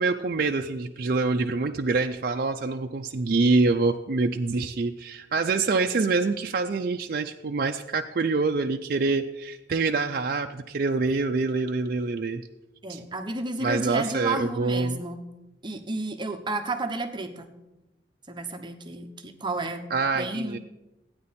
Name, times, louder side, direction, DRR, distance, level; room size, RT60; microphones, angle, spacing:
voice 1, 0.0-12.4 12.9-13.0 13.6-15.0 19.9-20.6, right 3 dB, 55° right, 4 dB, 0.5 m, -26 dB
voice 2, 12.8-15.3 15.6-17.5 18.3-19.9 20.1-20.6, right 2 dB, 25° right, 6 dB, 0.9 m, -31 dB
14.5 x 9.5 x 4.2 m, 0.97 s
head